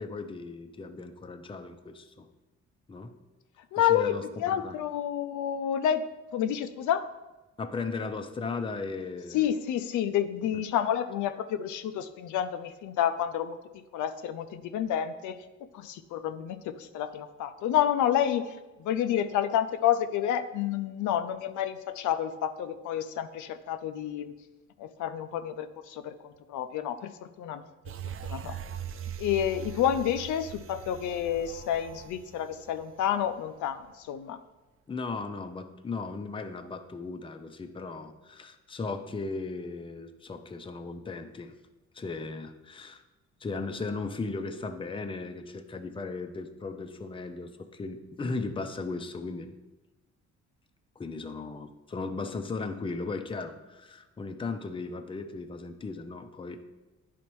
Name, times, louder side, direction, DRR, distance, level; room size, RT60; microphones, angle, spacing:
voice 1, 0.0-2.3 2.9-3.1 3.8-4.2 4.6-4.8 7.6-9.5 10.5-10.6 34.9-41.5 41.9-43.0 43.4-49.5 51.0-56.6, left 3 dB, 15° left, 7 dB, 0.5 m, -36 dB
voice 2, 3.7-6.0 6.3-7.0 9.3-13.6 13.9-15.4 15.7-24.4 24.8-27.1 27.4-27.6 28.2-28.6 29.2-34.4, left 10 dB, 75° left, 9 dB, 0.5 m, -29 dB
sound 1, 27.8-33.5 33.9-34.0, right 8 dB, 45° right, 0.4 m, -41 dB
10.5 x 4.2 x 3.0 m, 1.1 s
cardioid pair, 90°, 30 cm